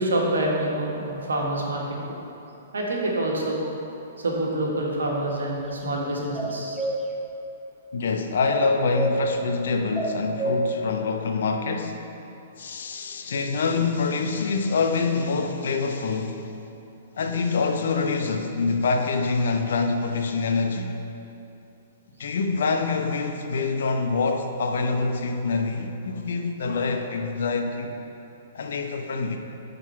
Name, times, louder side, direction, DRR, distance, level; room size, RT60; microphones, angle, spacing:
voice 1, 0.0-2.0 2.7-3.6 4.2-6.8, right 1 dB, 70° right, -2 dB, 1.5 m, -26 dB
sound 1, 6.3-7.0 8.5-9.1 9.9-10.6, right 1 dB, 10° left, 0.8 m, -27 dB
voice 2, 7.9-12.0 12.6-16.4 17.2-20.9 22.2-28.0 28.5-29.4, left 4 dB, 60° left, 4 dB, 0.8 m, -25 dB
10.0 x 4.0 x 5.6 m, 2.8 s
figure-of-eight pair, 115°, 0 cm